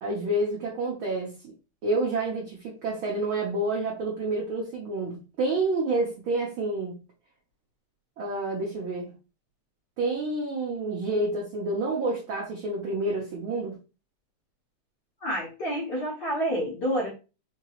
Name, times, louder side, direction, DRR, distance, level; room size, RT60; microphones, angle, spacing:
voice 1, 0.0-1.3 1.8-6.9 8.2-9.1 10.0-13.8, right 2 dB, 70° right, -2 dB, 1.2 m, -28 dB
voice 2, 15.2-17.1, equal, 55° left, -4 dB, 1.1 m, -28 dB
4.5 x 2.9 x 2.9 m, 0.31 s
omnidirectional pair, 3.5 m